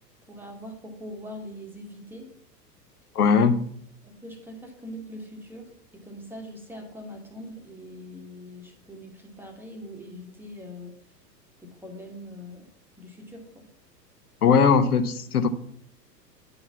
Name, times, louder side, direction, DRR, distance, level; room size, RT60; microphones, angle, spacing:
voice 1, 0.3-2.3 4.0-11.0 11.6-12.7 13.0-13.7, equal, 5° right, 2 dB, 1.1 m, -42 dB
voice 2, 3.1-3.7 14.4-15.5, left 6 dB, 65° left, 10 dB, 0.8 m, -19 dB
9.4 x 4.0 x 7.1 m, 0.66 s
figure-of-eight pair, 100°, 49 cm